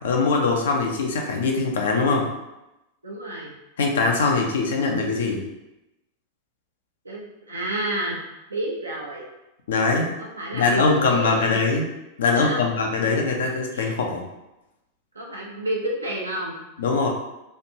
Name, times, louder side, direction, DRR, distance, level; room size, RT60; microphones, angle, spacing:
voice 1, 0.0-2.3 3.8-5.4 9.7-10.1 10.5-11.8 12.2-14.2 16.8-17.1, left 4 dB, 65° left, 1 dB, 0.6 m, -22 dB
voice 2, 3.0-3.5 7.0-8.2 8.5-9.2 10.2-11.6 12.3-13.2 13.7-14.0 15.1-16.6, right 1 dB, 80° right, -3 dB, 0.8 m, -30 dB
3.2 x 2.5 x 2.9 m, 0.93 s
figure-of-eight pair, 90°, 0 cm